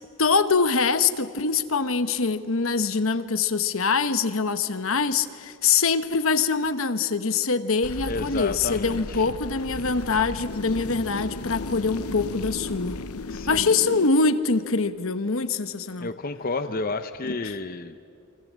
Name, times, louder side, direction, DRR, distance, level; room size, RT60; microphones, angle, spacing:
voice 1, 0.2-13.0 13.5-16.1 17.3-17.5, left 4 dB, 65° left, 1.1 m, -24 dB
sound 1, 7.8-14.1, left 2 dB, 90° left, 1.0 m, -35 dB
voice 2, 8.1-9.2 13.3-13.7 16.0-18.0, left 3 dB, 40° left, 0.7 m, -31 dB
29.5 x 23.5 x 7.5 m
head